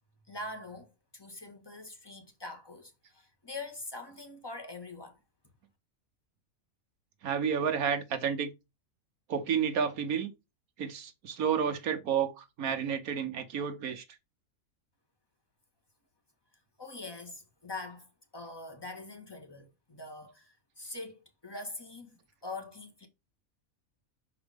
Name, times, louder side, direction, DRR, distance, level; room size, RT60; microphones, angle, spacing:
voice 1, 0.3-5.2 16.8-22.1 22.4-23.1, left 2 dB, 15° left, 1.5 m, -43 dB
voice 2, 7.2-8.5 9.3-10.3 10.8-14.0, right 7 dB, 80° right, 1.5 m, -31 dB
6.3 x 4.9 x 3.5 m
omnidirectional pair, 1.5 m